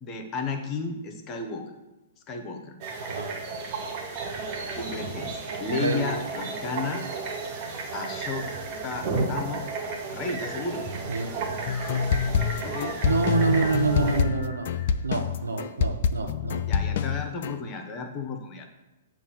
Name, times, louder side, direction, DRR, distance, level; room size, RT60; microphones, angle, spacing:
voice 1, 0.0-1.7 2.3-2.7 4.7-7.0 7.9-8.5 8.8-9.6 10.0-10.9 12.6-13.0 13.5-13.7 16.7-18.7, left 4 dB, 30° left, 5 dB, 0.8 m, -33 dB
sound 1, 2.8-14.2, right 4 dB, 40° right, 1.0 m, -33 dB
voice 2, 5.7-6.1 11.1-11.3 13.0-14.7 15.0-16.6, right 4 dB, 75° right, 4 dB, 0.7 m, -27 dB
sound 2, 11.7-17.5, left 7 dB, 55° left, 0.3 m, -26 dB
7.2 x 2.6 x 5.5 m, 0.99 s
figure-of-eight pair, 110°, 0 cm